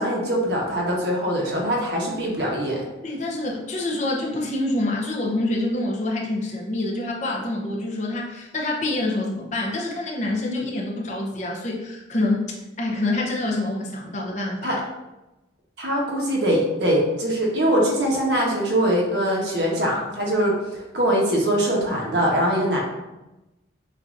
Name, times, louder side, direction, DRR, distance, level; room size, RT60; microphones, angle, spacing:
voice 1, 0.0-2.8 14.6-14.8 15.8-20.5 20.9-22.8, equal, 65° right, -2 dB, 1.1 m, -22 dB
voice 2, 3.0-12.5 12.8-14.8, left 2 dB, 40° left, -2 dB, 0.8 m, -26 dB
6.6 x 2.6 x 2.6 m, 0.99 s
head